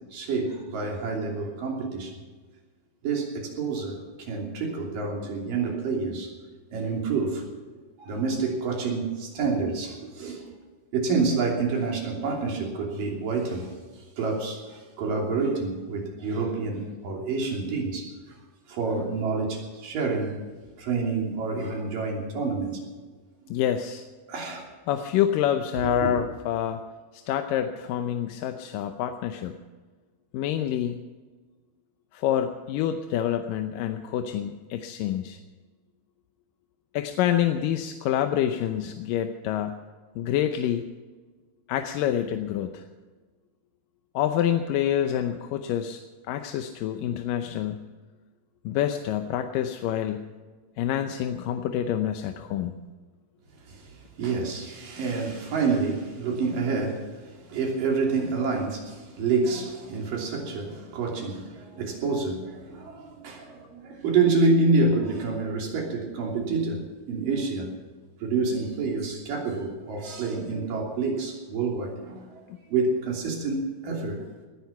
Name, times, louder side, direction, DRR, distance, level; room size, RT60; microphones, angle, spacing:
voice 1, 0.1-2.2 3.0-6.3 6.7-7.4 8.0-10.5 10.9-13.7 14.2-18.4 18.7-20.4 20.8-22.8 24.3-24.7 26.0-26.1 53.7-67.8 68.2-72.4 72.7-73.6 73.8-74.2, right 4 dB, 85° right, 0 dB, 4.7 m, -28 dB
voice 2, 23.5-24.1 24.9-26.8 27.1-29.5 30.3-31.0 32.1-35.4 36.9-39.8 40.2-40.8 41.7-42.8 44.1-46.0 46.3-47.9 48.7-50.3 50.8-52.8 72.5-72.6, left 10 dB, 85° left, 6 dB, 2.5 m, -27 dB
19.5 x 10.5 x 5.8 m, 1.4 s
omnidirectional pair, 3.8 m